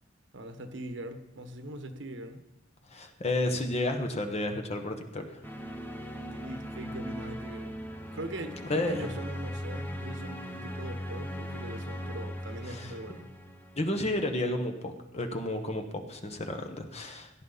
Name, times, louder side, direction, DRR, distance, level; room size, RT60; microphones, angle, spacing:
voice 1, 0.3-2.4 6.2-7.8 8.1-13.3, right 1 dB, 80° right, 7 dB, 1.3 m, -41 dB
voice 2, 2.9-5.4 8.7-9.1 12.7-12.9 13.7-17.3, left 1 dB, 35° left, 5 dB, 1.2 m, -32 dB
sound 1, 5.4-14.3, equal, 10° left, 1.0 m, -39 dB
17.0 x 11.0 x 4.1 m, 0.97 s
head